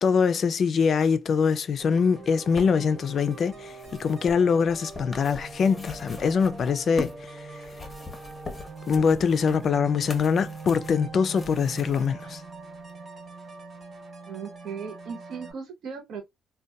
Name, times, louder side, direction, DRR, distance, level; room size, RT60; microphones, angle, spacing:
voice 1, 0.0-7.6 8.9-12.4, left 6 dB, 55° left, 0.3 m, -23 dB
sound 1, 1.8-15.5, right 4 dB, 45° right, 1.0 m, -42 dB
sound 2, 2.1-7.2 7.6-12.1 12.9-13.0, left 2 dB, 25° left, 0.6 m, -42 dB
voice 2, 14.3-16.2, right 6 dB, 70° right, 0.5 m, -37 dB
2.6 x 2.2 x 2.2 m
cardioid pair, 90°, 0 cm